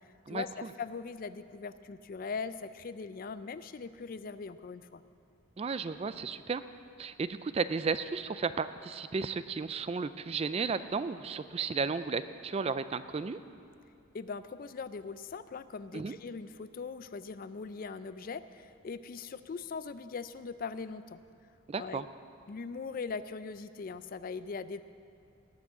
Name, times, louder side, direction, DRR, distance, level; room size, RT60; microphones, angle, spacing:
voice 1, 0.3-5.0 14.1-21.2 21.8-22.0 22.5-24.8, left 5 dB, 45° left, 13 dB, 0.4 m, -40 dB
voice 2, 5.6-6.6 7.0-13.4 15.9-16.2 21.7-22.1, right 5 dB, 30° right, 13 dB, 0.3 m, -33 dB
18.5 x 6.1 x 7.4 m, 2.4 s
head